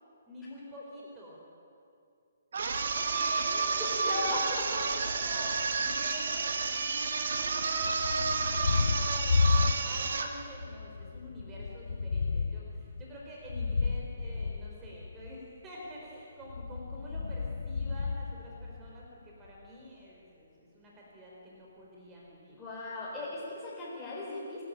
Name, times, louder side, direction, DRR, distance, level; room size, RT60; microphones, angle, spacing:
voice 1, 0.3-1.4 2.9-22.6 23.2-23.4, equal, 20° right, -4 dB, 4.4 m, -47 dB
sound 1, 2.5-10.4, right 4 dB, 60° right, 1.7 m, -31 dB
voice 2, 3.8-4.8 22.6-24.6, left 2 dB, 10° left, -9 dB, 5.0 m, -37 dB
Thunder, 7.8-10.2 10.5-15.4 16.4-19.1, left 4 dB, 70° left, 0.6 m, -32 dB
26.0 x 12.0 x 9.0 m, 2.5 s
figure-of-eight pair, 135°, 0 cm